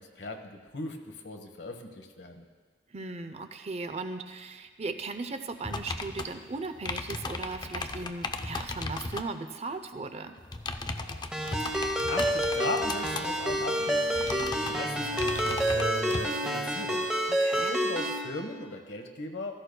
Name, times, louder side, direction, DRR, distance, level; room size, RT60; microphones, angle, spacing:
voice 1, 0.0-2.4 12.1-17.1 17.5-19.5, left 2 dB, 75° left, 4 dB, 1.2 m, -38 dB
voice 2, 2.9-10.3 17.3-17.8, right 3 dB, 35° right, 8 dB, 0.5 m, -37 dB
sound 1, 5.6-9.3 10.4-16.2, left 3 dB, 25° left, 0.4 m, -37 dB
sound 2, 10.8-17.3, right 2 dB, 60° right, 1.8 m, -42 dB
Ringtone, 11.3-18.2, equal, 5° right, 1.0 m, -29 dB
15.5 x 14.0 x 2.3 m, 1.5 s
head